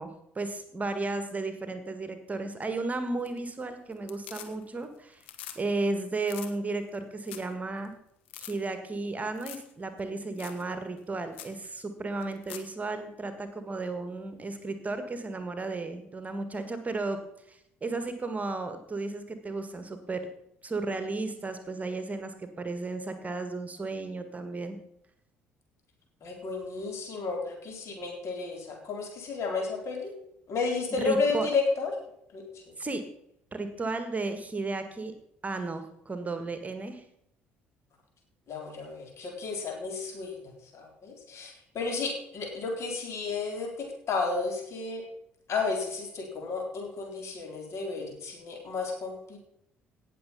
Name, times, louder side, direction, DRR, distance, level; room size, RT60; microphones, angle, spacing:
voice 1, 0.0-5.2 5.5-7.9 8.4-17.2 17.5-20.2 20.6-24.8 31.0-31.5 32.8-33.0 33.5-35.1 35.4-37.0, right 3 dB, 25° right, 9 dB, 1.7 m, -34 dB
sound 1, 3.1-3.6 3.9-4.8 5.1-5.6 5.9-6.0 6.2-6.5 6.9-7.0 7.2-7.5 7.8-7.9 8.3-8.5 9.4-9.7 10.0-10.1 10.4-10.6 11.0-11.1 11.3-11.6 12.2-12.7 14.9-15.0, left 11 dB, 70° left, 1.2 m, -44 dB
voice 2, 26.2-30.1 30.5-31.9 32.3-32.8 38.5-40.4 40.7-45.1 45.5-49.4, left 4 dB, 50° left, 2 dB, 4.0 m, -32 dB
17.5 x 6.9 x 5.5 m, 0.76 s
figure-of-eight pair, 50°, 6 cm